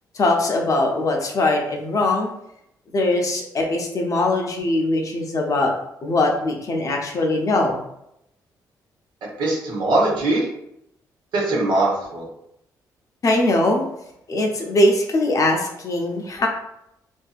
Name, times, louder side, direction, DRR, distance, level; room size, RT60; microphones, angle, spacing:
voice 1, 0.2-2.3 2.9-5.7 6.0-7.8 13.2-13.8 14.3-16.5, left 2 dB, 45° left, 1 dB, 0.6 m, -21 dB
voice 2, 9.4-10.5 11.3-12.3, right 2 dB, 75° right, -3 dB, 0.9 m, -21 dB
2.6 x 2.5 x 2.3 m, 0.78 s
cardioid pair, 75°, 8 cm